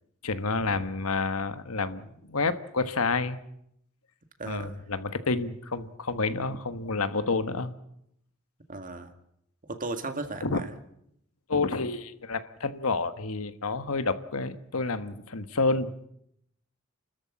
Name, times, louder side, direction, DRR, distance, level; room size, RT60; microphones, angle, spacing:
voice 1, 0.2-3.4 4.4-7.7 10.4-10.6 11.5-15.9, left 3 dB, 75° left, 10 dB, 1.4 m, -29 dB
voice 2, 4.4-4.8 6.5-6.6 8.7-9.1 9.7-10.7, right 2 dB, 40° right, 7 dB, 2.0 m, -36 dB
29.0 x 13.5 x 8.6 m, 0.76 s
head